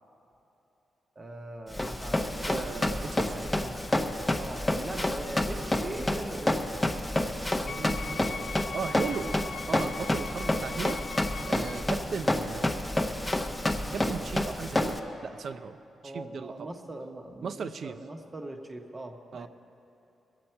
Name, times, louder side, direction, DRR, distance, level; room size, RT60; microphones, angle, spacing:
voice 1, 1.2-3.0 3.3-3.9 4.4-6.6 12.0-12.2 16.0-19.5, right 1 dB, 20° right, 3 dB, 0.8 m, -41 dB
Run, 1.7-15.0, left 1 dB, 10° left, 0.6 m, -29 dB
voice 2, 2.5-3.4 7.2-9.4 9.7-11.0 11.5-12.8 13.9-15.8 16.0-16.7 17.4-18.0 19.3-19.5, right 6 dB, 45° right, 11 dB, 0.5 m, -37 dB
Wind instrument woodwind instrument, 7.7-11.9, left 6 dB, 75° left, 0.5 m, -40 dB
22.5 x 8.3 x 4.4 m, 3.0 s
wide cardioid pair, 180°, 0 cm